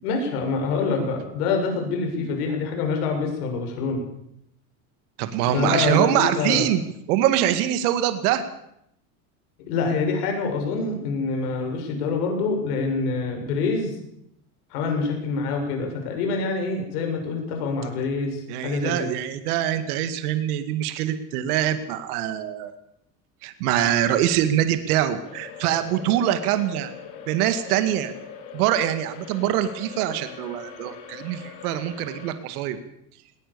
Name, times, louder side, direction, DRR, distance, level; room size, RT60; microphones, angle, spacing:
voice 1, 0.0-4.0 5.5-6.7 9.6-14.0 14.7-19.1, left 4 dB, 80° left, 3 dB, 7.1 m, -26 dB
voice 2, 5.2-6.8 7.1-8.4 18.5-22.7 23.4-26.9 27.3-28.1 28.5-32.8, right 11 dB, 75° right, 10 dB, 2.2 m, -24 dB
sound 1, 25.2-32.3, left 7 dB, 55° left, 4.9 m, -41 dB
19.5 x 19.5 x 7.0 m, 0.77 s
supercardioid pair, 135°, 45 cm